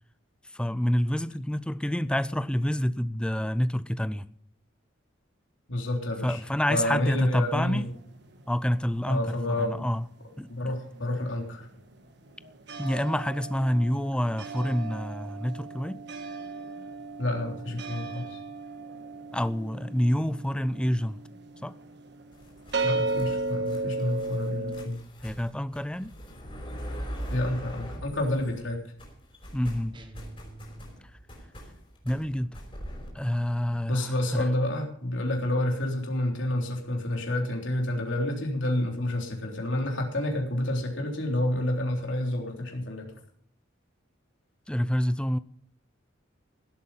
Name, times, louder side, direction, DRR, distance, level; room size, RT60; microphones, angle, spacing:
voice 1, 0.5-4.3 6.2-7.9 8.5-10.1 10.4-10.5 12.8-16.0 19.3-21.2 21.6-21.7 25.2-26.1 29.5-30.0 32.0-32.6 33.1-34.5 44.7-45.4, equal, 5° left, 0.4 m, -28 dB
voice 2, 5.7-6.4 6.7-7.9 9.1-9.8 10.5-11.7 17.2-18.4 22.8-25.0 27.3-28.8 33.9-43.1, left 1 dB, 70° left, 3.5 m, -29 dB
sound 1, 7.2-9.8 10.1-24.9, right 3 dB, 60° right, 1.5 m, -36 dB
sound 2, 22.3-28.7 29.0-33.1, equal, 25° left, 5.0 m, -42 dB
sound 3, 29.9-31.3, right 1 dB, 25° right, 1.3 m, -47 dB
17.0 x 8.5 x 5.5 m
head